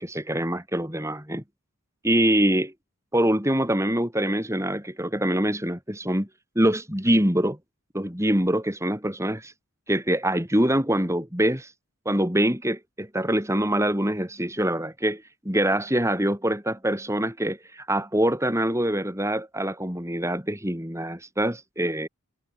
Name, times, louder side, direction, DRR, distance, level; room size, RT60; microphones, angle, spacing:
voice 1, 0.0-1.4 2.0-2.7 3.1-6.3 6.6-7.6 7.9-9.5 9.9-11.7 12.0-22.1, right 1 dB, 15° right, 4.4 m, -24 dB
head